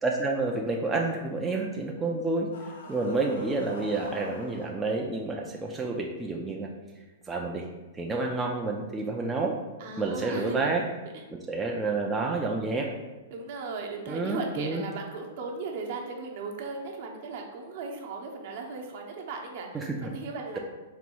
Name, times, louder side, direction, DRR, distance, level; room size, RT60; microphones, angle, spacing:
voice 1, 0.0-6.7 7.3-7.7 7.9-9.6 10.0-10.8 11.3-12.9 14.1-14.8 19.7-20.1, right 3 dB, 10° right, -1 dB, 0.3 m, -29 dB
sound 1, 2.5-4.7, left 3 dB, 80° left, 0.8 m, -47 dB
voice 2, 2.8-3.2 8.2-8.3 9.8-10.6 11.1-11.2 13.3-20.6, right 4 dB, 55° right, 1 dB, 0.7 m, -37 dB
4.0 x 2.3 x 4.5 m, 1.2 s
hypercardioid pair, 150°, 0 cm